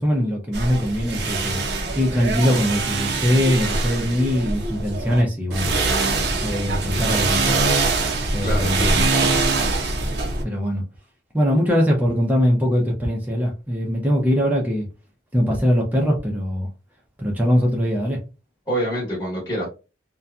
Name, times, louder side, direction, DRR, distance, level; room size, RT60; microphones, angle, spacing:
voice 1, 0.0-1.6 1.9-7.6 8.3-9.0 10.4-10.8 11.3-14.9 15.3-16.7 17.2-18.2, equal, 10° right, 0.5 m, -22 dB
sound 1, 0.5-5.2 5.5-10.4, right 3 dB, 65° right, 0.5 m, -23 dB
voice 2, 8.4-9.4 18.7-19.7, right 1 dB, 15° left, 0.9 m, -27 dB
2.6 x 2.1 x 2.3 m
head